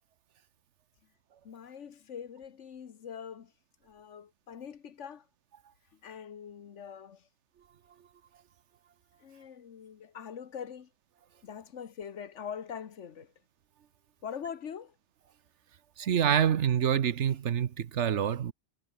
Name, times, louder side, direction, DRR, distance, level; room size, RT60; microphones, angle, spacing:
voice 1, 1.4-3.5 3.8-5.3 5.9-7.3 9.2-10.9 11.4-13.3 14.2-15.0, left 7 dB, 80° left, 1.4 m, -43 dB
voice 2, 16.0-18.5, right 9 dB, 70° right, 1.2 m, -26 dB
omnidirectional pair, 1.2 m